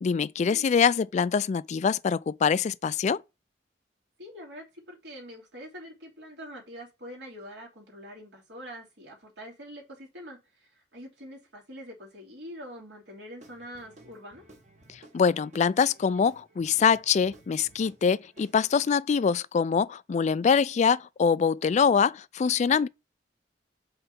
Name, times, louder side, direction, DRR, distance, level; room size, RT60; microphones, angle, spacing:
voice 1, 0.0-3.2 15.1-22.9, left 6 dB, 40° left, 0.3 m, -24 dB
voice 2, 4.2-14.4, equal, 75° right, 3.2 m, -44 dB
Guitar / Drum, 13.4-18.9, right 1 dB, 40° right, 1.3 m, -55 dB
5.7 x 4.0 x 5.6 m
head